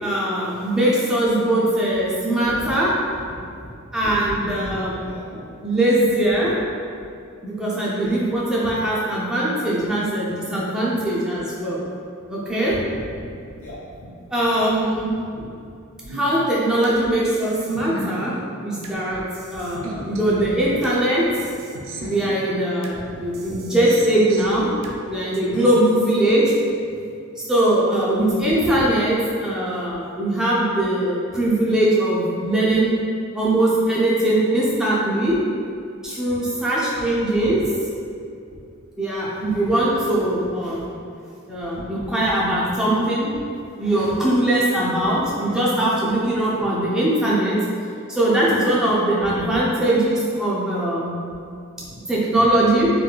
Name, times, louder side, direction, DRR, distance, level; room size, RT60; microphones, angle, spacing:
voice 1, 0.0-2.9 3.9-5.0 5.6-6.5 7.4-11.8 12.3-12.7 14.3-15.1 16.1-18.3 18.6-19.2 19.5-21.2 22.0-24.7 25.1-26.5 27.4-29.2 29.4-32.9 33.3-35.4 36.0-37.6 39.0-40.9 41.5-43.3 43.8-47.6 48.1-51.1 52.1-52.9, right 1 dB, 5° right, -8 dB, 0.5 m, -21 dB
voice 2, 2.4-2.7 3.1-5.4 6.9-7.1 8.0-8.1 8.6-8.8 9.8-9.9 12.6-14.1 14.9-15.0 15.3-15.7 16.0-16.1 16.9-17.0 19.1-19.2 19.5-19.6 19.9-20.8 21.3-21.4 22.0-22.1 22.9-23.6 24.5-24.9 28.5-28.9 31.4-31.5 35.3-35.4 36.3-36.4 36.9-37.1 37.3-37.8 38.5-38.6 39.4-39.8 40.2-40.3 40.8-40.9 41.5-42.6 43.3-43.4 45.1-45.4 46.6-47.3 49.2-49.6 51.7-52.0 52.3-52.5 52.8-52.9, equal, 70° left, -7 dB, 0.9 m, -39 dB
sound 1, 16.1-17.0 17.3-19.0 19.3-21.0 21.3-23.0 23.3-25.0 25.3-25.4, right 2 dB, 65° right, 0.4 m, -36 dB
3.8 x 2.6 x 2.2 m, 2.5 s
head